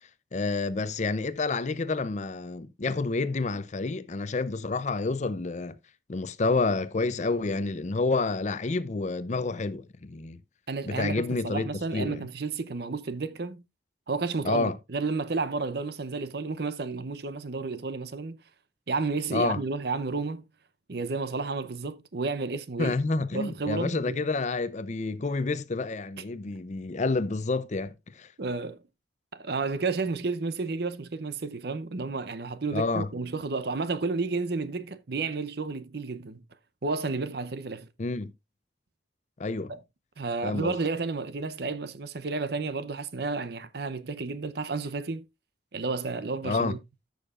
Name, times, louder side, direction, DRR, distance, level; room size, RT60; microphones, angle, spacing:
voice 1, 0.3-5.8 6.1-10.4 10.8-12.2 14.4-14.8 19.3-19.6 22.8-28.3 32.7-33.1 38.0-38.3 39.4-39.7 40.4-40.8 46.4-46.8, left 3 dB, 40° left, 0.6 m, -29 dB
voice 2, 10.7-13.6 14.1-18.4 18.9-20.4 20.9-22.9 23.3-24.2 28.4-28.8 29.3-36.4 36.8-37.9 39.7-39.8 40.2-45.2 45.7-46.8, right 4 dB, 60° right, 0.7 m, -31 dB
14.0 x 6.4 x 2.5 m
head